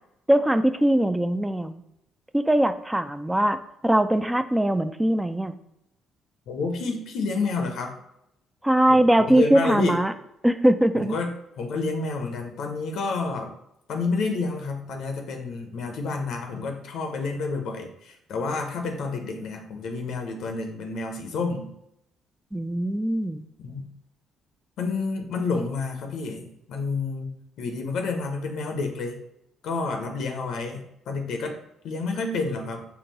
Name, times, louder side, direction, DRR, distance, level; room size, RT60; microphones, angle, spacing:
voice 1, 0.3-1.8 2.3-3.6 3.8-5.5 8.6-10.1 10.4-11.1 22.5-23.4, right 1 dB, 10° right, 10 dB, 0.3 m, -21 dB
voice 2, 6.5-8.0 8.9-10.0 11.0-13.5 13.9-21.7 23.6-23.9 24.8-29.2 29.6-31.5 31.8-32.8, left 3 dB, 65° left, 4 dB, 0.6 m, -29 dB
3.7 x 2.2 x 4.0 m, 0.80 s
hypercardioid pair, 50°, 0 cm